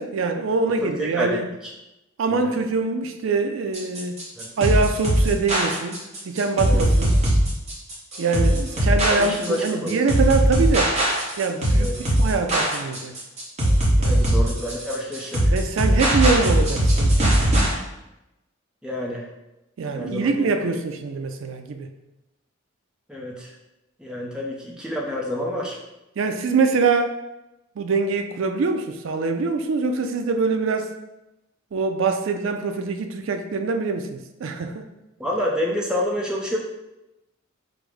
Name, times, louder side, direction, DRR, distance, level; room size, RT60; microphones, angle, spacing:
voice 1, 0.0-1.4 2.2-4.2 4.6-7.1 8.2-10.9 11.4-13.1 14.0-14.2 15.5-17.5 19.8-21.9 26.2-27.1 27.8-30.9 31.7-34.9, right 4 dB, 70° right, 7 dB, 0.4 m, -24 dB
voice 2, 0.7-1.7 2.3-2.5 4.4-4.5 6.6-6.8 9.2-10.0 11.8-12.0 14.1-15.5 18.8-19.3 19.9-20.5 23.1-23.5 24.0-25.8 35.2-36.6, equal, 5° right, -3 dB, 0.6 m, -28 dB
sound 1, 3.7-17.7, right 1 dB, 30° right, 1.0 m, -20 dB
4.9 x 2.1 x 4.8 m, 0.94 s
head